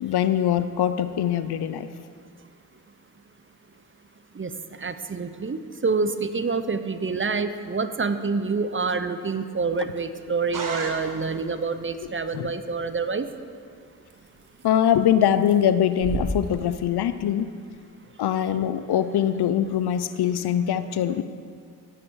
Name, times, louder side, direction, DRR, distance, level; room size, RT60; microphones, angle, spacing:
voice 1, 0.0-1.9 12.3-12.5 14.6-17.5 18.2-21.2, left 10 dB, 65° left, 12 dB, 0.7 m, -23 dB
voice 2, 4.8-13.3, right 4 dB, 30° right, 11 dB, 0.8 m, -27 dB
sound 1, 9.7-16.7, right 2 dB, 75° right, 1.6 m, -39 dB
sound 2, 10.5-11.6, right 3 dB, 50° right, 1.8 m, -34 dB
15.0 x 8.8 x 4.8 m, 2.1 s
supercardioid pair, 45°, 41 cm